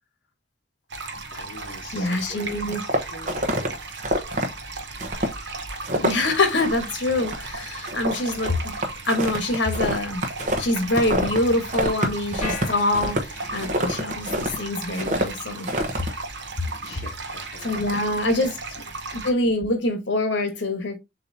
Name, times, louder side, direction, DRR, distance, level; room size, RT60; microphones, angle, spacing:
sound 1, 0.9-19.3, right 3 dB, 70° right, 0.9 m, -36 dB
voice 1, 1.3-3.8 16.8-18.0 18.8-18.9, left 3 dB, 55° left, 1.1 m, -44 dB
voice 2, 1.9-2.8 6.0-8.7 9.1-10.2 10.6-15.7 17.6-18.6 19.1-21.0, left 2 dB, 70° left, 1.3 m, -25 dB
sound 2, 2.7-3.7 4.0-4.5 5.0-5.4 5.6-6.3 6.6-6.9 7.1-7.6 7.9-11.4 11.7-14.6 14.9-15.3 15.6-16.1, right 1 dB, 40° right, 0.9 m, -26 dB
sound 3, 12.4-13.8, left 3 dB, 40° left, 1.3 m, -37 dB
6.8 x 2.9 x 2.7 m
head